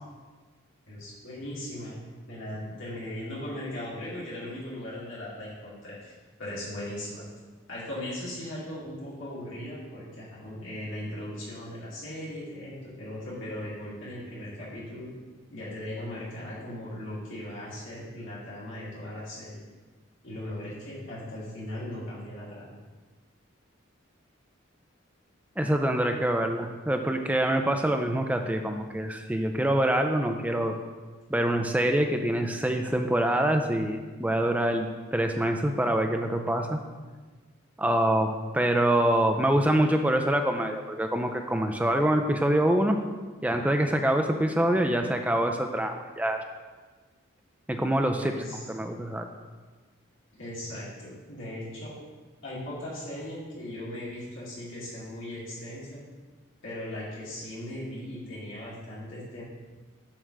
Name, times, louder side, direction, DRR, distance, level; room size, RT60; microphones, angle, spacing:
voice 1, 0.9-2.0 2.3-7.2 7.7-15.1 15.5-19.6 20.2-22.7 48.2-48.7 50.4-52.0 52.4-56.0 56.6-59.4, left 1 dB, 70° left, -8 dB, 2.4 m, -38 dB
voice 2, 25.6-30.8 31.3-36.8 37.8-43.0 43.4-46.4 47.7-48.3 48.7-49.3, right 1 dB, 5° right, 5 dB, 0.4 m, -25 dB
7.3 x 3.4 x 6.3 m, 1.3 s
head